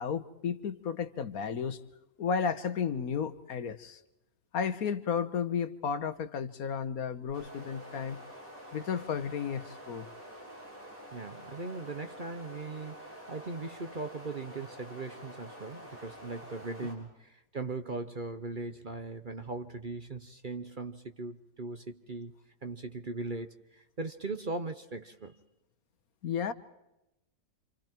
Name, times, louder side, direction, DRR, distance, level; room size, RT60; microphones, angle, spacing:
voice 1, 0.0-1.8 2.2-4.0 4.5-8.2 8.7-10.1 26.2-26.5, left 6 dB, 65° left, 1.5 m, -33 dB
sound 1, 7.3-16.9, equal, 60° right, 7.9 m, -48 dB
voice 2, 11.1-22.3 22.6-25.4, right 3 dB, 40° right, 1.0 m, -39 dB
28.5 x 27.0 x 4.5 m
omnidirectional pair, 1.6 m